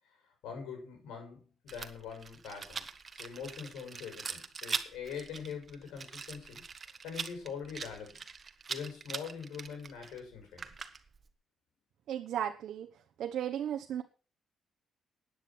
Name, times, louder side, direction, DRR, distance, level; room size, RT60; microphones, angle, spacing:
voice 1, 0.2-2.9 3.1-8.2 8.7-10.8, left 6 dB, 90° left, 3 dB, 7.1 m, -43 dB
Rattle, 1.7-11.3, right 5 dB, 40° right, 1.5 m, -42 dB
voice 2, 12.1-12.9 13.2-14.0, right 10 dB, 75° right, 5 dB, 1.1 m, -35 dB
12.0 x 9.7 x 6.1 m, 0.36 s
cardioid pair, 90°, 0 cm